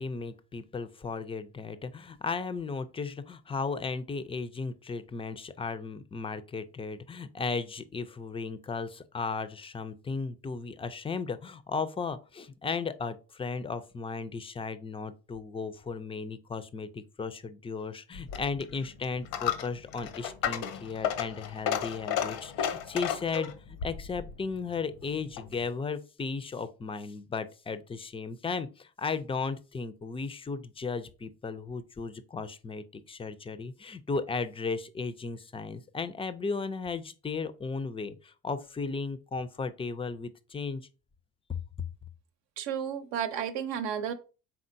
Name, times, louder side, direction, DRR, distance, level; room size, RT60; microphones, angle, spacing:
voice 1, 0.0-40.8 41.5-41.6, left 4 dB, 15° left, 0.3 m, -35 dB
Coin (dropping), 18.1-25.6, left 9 dB, 80° left, 0.7 m, -34 dB
voice 2, 42.6-44.1, right 8 dB, 75° right, 0.7 m, -32 dB
4.5 x 3.6 x 2.6 m
hypercardioid pair, 60°, 45 cm